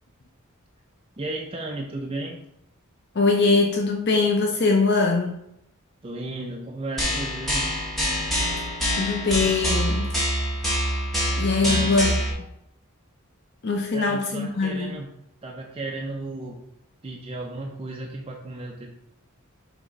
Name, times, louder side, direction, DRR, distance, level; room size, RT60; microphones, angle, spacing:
voice 1, 1.2-2.4 6.0-7.7 11.6-12.0 13.9-15.1 15.4-16.6 17.0-19.0, right 2 dB, 25° right, 0 dB, 0.6 m, -34 dB
voice 2, 3.1-5.4 9.0-10.1 11.4-12.1 13.6-15.0, left 3 dB, 50° left, 2 dB, 0.6 m, -22 dB
sound 1, 7.0-12.3, equal, ahead, 1.6 m, -25 dB
6.2 x 3.0 x 5.1 m, 0.79 s
head